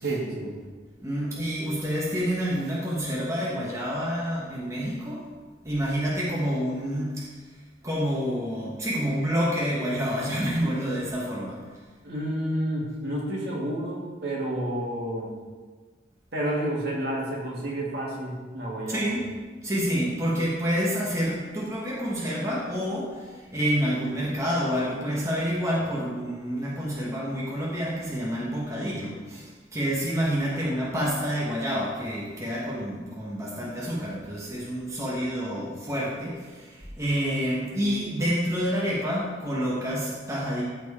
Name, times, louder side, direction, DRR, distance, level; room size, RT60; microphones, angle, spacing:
voice 1, 0.0-0.5 12.0-15.3 16.3-19.1, right 1 dB, 60° right, -4 dB, 2.3 m, -30 dB
voice 2, 1.0-5.2 5.6-7.2 7.8-11.6 18.9-19.3 19.6-23.1 23.5-29.4 29.7-36.4 37.0-40.6, equal, 15° right, -5 dB, 1.3 m, -28 dB
13.5 x 4.5 x 4.3 m, 1.4 s
head